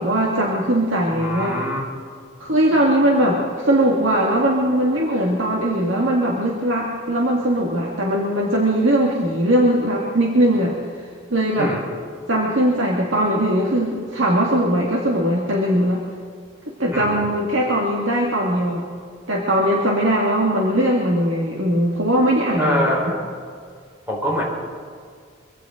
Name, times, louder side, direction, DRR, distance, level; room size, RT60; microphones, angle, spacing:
voice 1, 0.0-1.5 2.4-10.7 11.3-11.7 12.3-16.0 16.8-18.8 19.3-23.1, right 1 dB, 80° right, -2 dB, 2.0 m, -20 dB
voice 2, 1.1-1.8 11.6-11.8 16.9-17.3 22.6-23.2 24.1-24.4, left 1 dB, 10° right, -3 dB, 4.2 m, -24 dB
24.0 x 16.0 x 3.8 m, 2.1 s
head